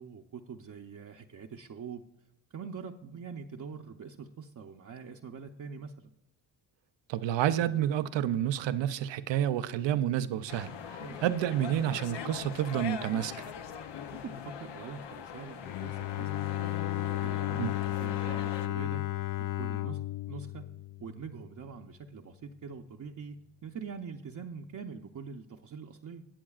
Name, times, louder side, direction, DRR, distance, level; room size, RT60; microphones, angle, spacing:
voice 1, 0.0-2.0 2.5-6.1 11.0-11.2 14.1-19.1 19.4-20.0 20.3-20.7 21.0-26.3, right 6 dB, 45° right, 0.7 m, -44 dB
voice 2, 7.1-10.7 11.2-13.5 17.6-17.7, right 11 dB, 85° right, 0.6 m, -29 dB
sound 1, 10.5-18.7, left 7 dB, 75° left, 0.8 m, -42 dB
Bowed string instrument, 15.6-21.5, left 16 dB, 50° left, 0.4 m, -34 dB
22.0 x 7.7 x 2.4 m
cardioid pair, 65°, 42 cm